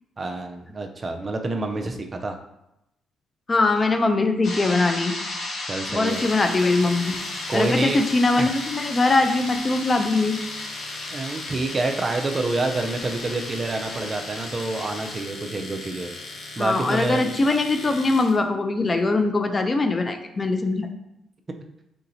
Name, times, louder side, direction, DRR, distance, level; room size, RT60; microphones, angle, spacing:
voice 1, 0.2-2.4 5.7-6.2 7.5-8.0 8.4-8.5 11.1-16.1 16.6-17.3, right 2 dB, 30° right, 4 dB, 0.5 m, -27 dB
voice 2, 3.5-5.1 5.9-7.1 7.5-10.4 16.6-20.9, left 3 dB, 30° left, 6 dB, 0.4 m, -21 dB
sound 1, 4.4-15.2, left 2 dB, 60° left, 1.1 m, -35 dB
Domestic sounds home sounds, 6.1-18.4, left 3 dB, 75° left, 0.9 m, -39 dB
4.2 x 3.9 x 2.6 m, 0.85 s
cardioid pair, 90°, 0 cm